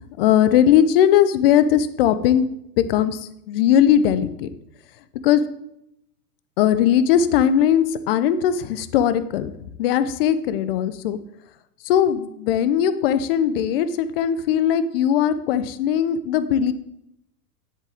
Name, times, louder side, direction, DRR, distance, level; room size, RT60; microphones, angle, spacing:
voice 1, 0.2-2.5 2.8-4.5 5.2-5.4 6.6-9.5 9.8-11.2 11.8-16.7, left 9 dB, 35° left, 13 dB, 0.7 m, -19 dB
10.5 x 7.3 x 3.6 m, 0.79 s
hypercardioid pair, 135°, 49 cm